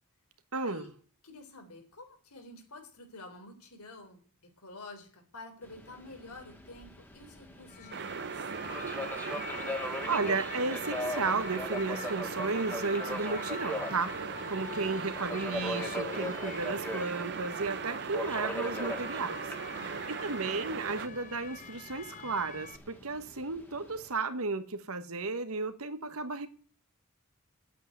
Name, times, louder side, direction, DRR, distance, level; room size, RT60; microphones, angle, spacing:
voice 1, 0.5-0.9 10.1-19.4 20.1-26.5, right 3 dB, 75° right, 1.3 m, -34 dB
voice 2, 1.2-4.2 4.6-8.9 19.7-20.2, left 2 dB, 90° left, 3.7 m, -50 dB
Subway metro underground, 5.6-24.1, left 1 dB, 10° left, 1.7 m, -41 dB
sound 1, 7.7-22.8, left 5 dB, 35° left, 0.8 m, -46 dB
sound 2, 7.9-21.1, right 6 dB, 50° right, 0.6 m, -38 dB
9.2 x 8.4 x 9.4 m
head